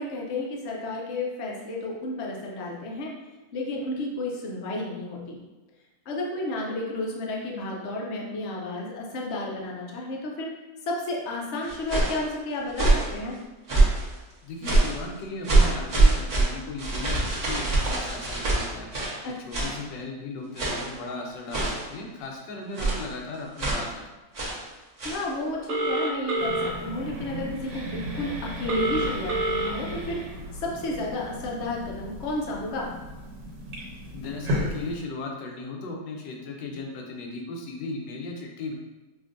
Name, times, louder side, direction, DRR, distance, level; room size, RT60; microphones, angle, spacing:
voice 1, 0.0-3.1 3.5-5.4 6.1-10.5 10.9-13.4 19.2-19.4 25.0-30.3 30.6-32.9, left 2 dB, 65° left, -2 dB, 0.6 m, -32 dB
sound 1, 11.6-12.2 12.7-13.1 13.7-14.1 14.6-15.0 15.4-19.2 19.5-19.8 20.6-20.9 21.5-21.9 22.8-23.1 23.6-23.9 24.3-24.6 25.0-25.3, right 2 dB, 35° right, 0.8 m, -23 dB
voice 2, 14.4-18.9 19.5-24.0 34.1-38.7, left 3 dB, 90° left, 1 dB, 1.3 m, -36 dB
Telephone, 25.7-26.7 28.7-29.7, right 2 dB, 60° right, 1.2 m, -26 dB
sound 2, 26.4-35.0, equal, 80° right, 1.5 m, -35 dB
5.0 x 2.6 x 2.5 m, 1.1 s
omnidirectional pair, 1.9 m